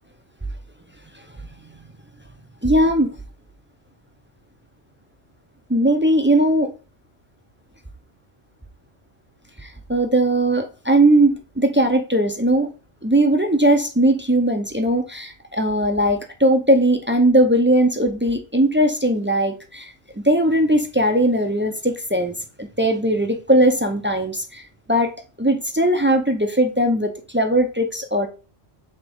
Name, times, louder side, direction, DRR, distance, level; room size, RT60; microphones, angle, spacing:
voice 1, 2.6-3.1 5.7-6.7 9.6-12.7 13.0-19.9 20.2-24.6 24.9-25.1 25.4-28.3, right 1 dB, 15° right, 0.4 m, -19 dB
7.9 x 3.5 x 3.6 m
omnidirectional pair, 1.1 m